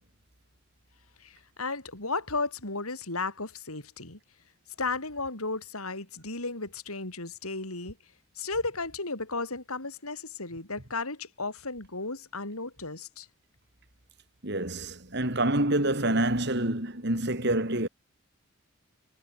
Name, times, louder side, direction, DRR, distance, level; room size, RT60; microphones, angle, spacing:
voice 1, 1.2-4.2 4.8-8.0 8.4-13.3, left 3 dB, 85° left, 6.2 m, -34 dB
voice 2, 14.4-17.9, right 1 dB, 50° right, 3.8 m, -27 dB
head